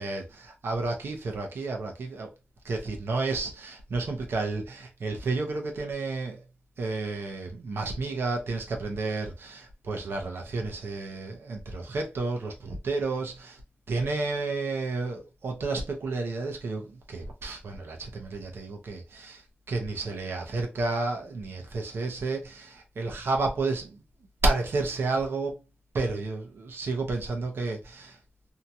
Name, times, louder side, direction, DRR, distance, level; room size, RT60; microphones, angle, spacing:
voice 1, 0.0-2.3 2.6-6.4 6.8-13.6 13.9-19.4 19.7-24.0 24.4-25.6 25.9-28.2, right 3 dB, 90° right, 0.8 m, -31 dB
2.8 x 2.4 x 2.7 m
wide cardioid pair, 105°, 4 cm